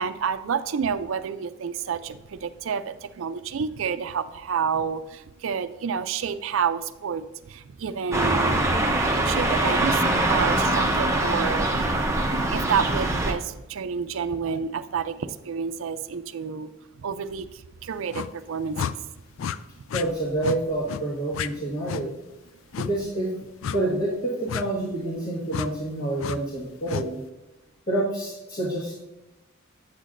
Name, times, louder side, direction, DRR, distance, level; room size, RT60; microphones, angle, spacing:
voice 1, 0.0-8.6 9.2-11.9 12.5-16.7 17.0-19.0, right 6 dB, 70° right, 12 dB, 0.4 m, -29 dB
sound 1, 8.1-13.3, right 1 dB, 15° right, 0.6 m, -23 dB
sound 2, 18.1-18.3 18.7-18.9 19.4-19.6 19.9-20.1 20.4-20.6 20.9-21.0 21.3-21.5 21.9-22.0 22.7-22.9 23.6-23.8 24.5-24.6 25.5-25.7 26.2-26.4 26.9-27.1, left 7 dB, 70° left, 0.3 m, -30 dB
voice 2, 19.9-22.1 22.8-23.3 23.7-27.2 27.9-28.9, right 1 dB, 45° left, -7 dB, 1.4 m, -28 dB
8.3 x 8.0 x 2.5 m, 1.0 s
head